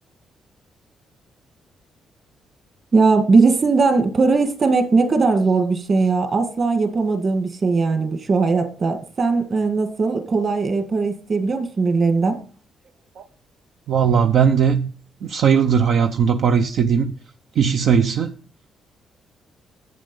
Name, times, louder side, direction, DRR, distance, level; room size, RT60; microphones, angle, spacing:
voice 1, 2.9-12.4, right 4 dB, 40° right, 1.9 m, -19 dB
voice 2, 13.9-14.9 15.2-17.2 17.6-18.3, right 7 dB, 65° right, 0.8 m, -18 dB
11.0 x 8.0 x 5.4 m
cardioid pair, 120°, 0 cm